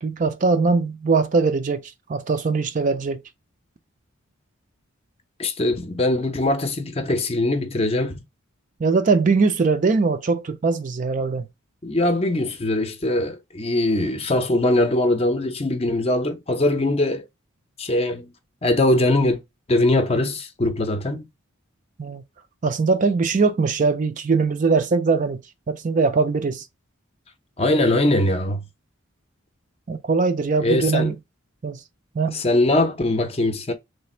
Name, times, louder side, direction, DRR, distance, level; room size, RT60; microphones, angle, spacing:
voice 1, 0.0-3.2 8.8-11.5 22.0-22.2 22.6-25.4 25.7-26.7 29.9-31.1 31.6-31.8 32.2-32.4, right 4 dB, 40° right, 0.4 m, -21 dB
voice 2, 5.4-8.2 11.8-17.3 17.8-18.3 18.6-19.4 19.7-21.3 27.6-28.6 30.6-31.1 32.3-33.7, left 1 dB, 30° left, 0.5 m, -21 dB
3.2 x 2.5 x 4.2 m
head